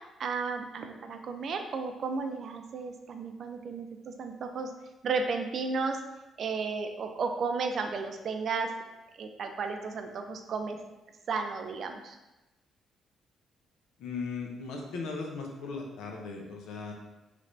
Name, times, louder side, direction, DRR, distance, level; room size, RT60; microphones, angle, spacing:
voice 1, 0.2-4.7 5.0-6.0 6.4-8.7 9.2-10.8 11.3-12.2, right 4 dB, 60° right, 5 dB, 0.4 m, -33 dB
voice 2, 14.0-16.9, left 4 dB, 85° left, 0 dB, 0.6 m, -37 dB
3.3 x 2.5 x 3.1 m, 1.0 s
cardioid pair, 90°, 0 cm